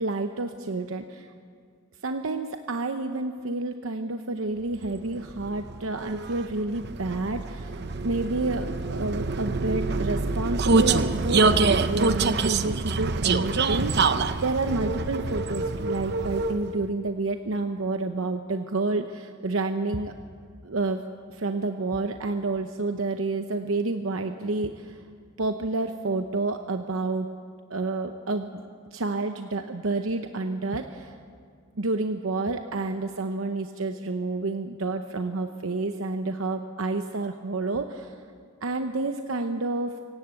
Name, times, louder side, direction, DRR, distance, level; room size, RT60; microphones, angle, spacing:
voice 1, 0.0-1.3 2.0-20.1 20.6-21.0 21.3-25.0 25.4-27.3 27.7-28.5 28.9-31.2 31.8-38.2 38.6-40.0, right 3 dB, 90° right, 7 dB, 0.9 m, -29 dB
Vehicle, 4.9-16.8, right 3 dB, 55° right, 0.8 m, -26 dB
25.5 x 16.0 x 8.3 m, 2.1 s
head